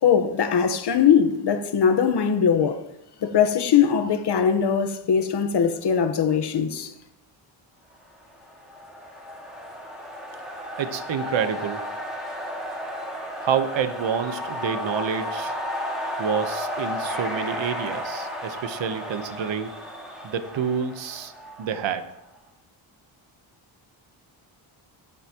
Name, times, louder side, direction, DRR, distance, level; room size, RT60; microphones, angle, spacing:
voice 1, 0.0-2.8 3.2-6.9, left 7 dB, 55° left, 1.3 m, -21 dB
sound 1, 8.3-22.1, equal, ahead, 3.4 m, -33 dB
voice 2, 10.8-11.9 13.4-15.5 16.2-19.7 20.2-21.3 21.6-22.0, right 7 dB, 65° right, 1.2 m, -28 dB
24.0 x 8.2 x 3.1 m
cardioid pair, 105°, 49 cm